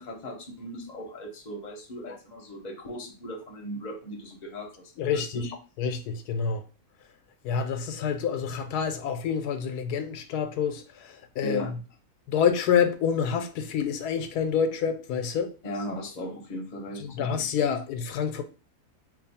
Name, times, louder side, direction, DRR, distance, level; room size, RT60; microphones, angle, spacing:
voice 1, 0.0-5.5 11.4-11.7 15.6-17.3, equal, 35° left, 0.7 m, -37 dB
voice 2, 5.0-5.5 5.8-6.6 7.4-11.8 12.3-15.5 16.9-18.4, left 7 dB, 85° left, 1.1 m, -27 dB
3.0 x 2.3 x 4.1 m
omnidirectional pair, 1.6 m